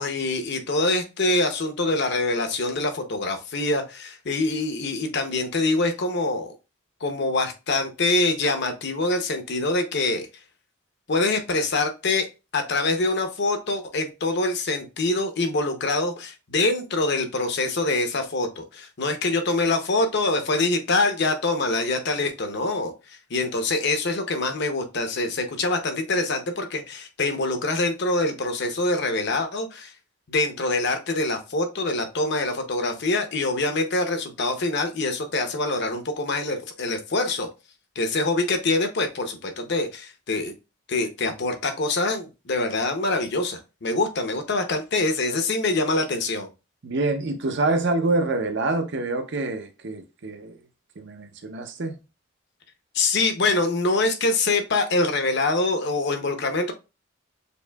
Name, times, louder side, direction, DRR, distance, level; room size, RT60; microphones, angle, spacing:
voice 1, 0.0-6.5 7.0-10.3 11.1-12.3 12.5-29.9 30.3-37.5 38.0-40.5 40.9-46.5 52.9-56.7, left 2 dB, 55° left, 0.7 m, -25 dB
voice 2, 46.8-50.6 51.0-52.0, right 2 dB, 55° right, 0.6 m, -26 dB
6.8 x 2.7 x 2.3 m
head